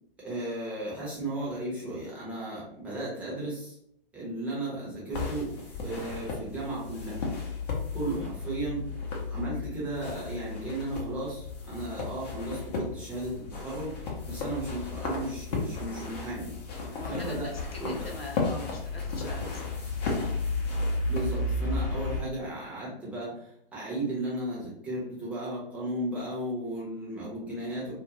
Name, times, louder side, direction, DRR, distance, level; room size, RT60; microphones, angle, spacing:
voice 1, 0.2-3.8 4.1-7.2 7.9-8.9 9.3-16.5 17.1-17.5 17.8-18.1 21.1-27.9, right 1 dB, 5° right, -7 dB, 0.8 m, -35 dB
sound 1, 5.1-22.2, left 3 dB, 45° left, 0.8 m, -34 dB
voice 2, 16.9-20.1 22.1-22.2, left 1 dB, 90° left, 0 dB, 0.9 m, -43 dB
2.5 x 2.3 x 2.9 m, 0.70 s
figure-of-eight pair, 125°, 29 cm